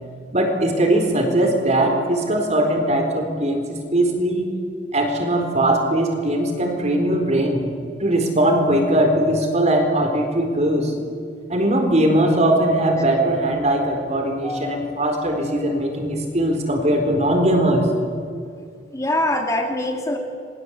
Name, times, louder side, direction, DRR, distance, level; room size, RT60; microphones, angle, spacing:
voice 1, 0.3-4.4 4.9-7.6 8.0-10.9 11.5-17.9, right 1 dB, 35° right, 4 dB, 4.3 m, -20 dB
voice 2, 14.4-14.8 18.9-20.2, left 1 dB, 15° left, 3 dB, 2.4 m, -23 dB
27.5 x 21.5 x 8.4 m, 2.3 s
head